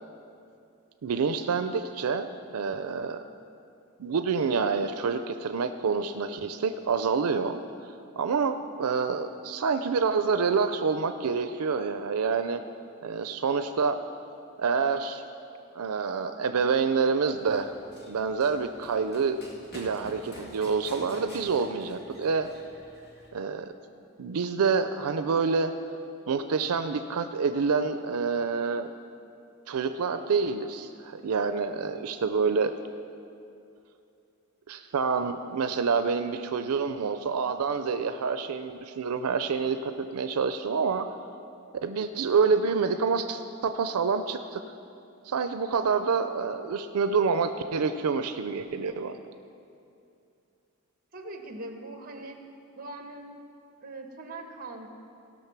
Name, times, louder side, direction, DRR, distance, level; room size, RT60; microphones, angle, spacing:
voice 1, 1.0-3.2 4.0-7.6 8.2-12.6 13.0-14.0 14.6-15.2 15.7-17.7 18.0-19.4 19.7-22.5 23.3-23.7 24.2-25.7 26.3-28.9 29.7-32.7 34.7-41.1 41.8-44.6 45.2-49.2, right 5 dB, 90° right, 9 dB, 0.5 m, -27 dB
Run, 17.3-23.3, equal, 50° left, 1.9 m, -48 dB
voice 2, 51.1-52.4 52.7-53.3 53.8-54.9, right 2 dB, 40° right, 4 dB, 1.1 m, -41 dB
17.5 x 6.3 x 5.9 m, 2.6 s
head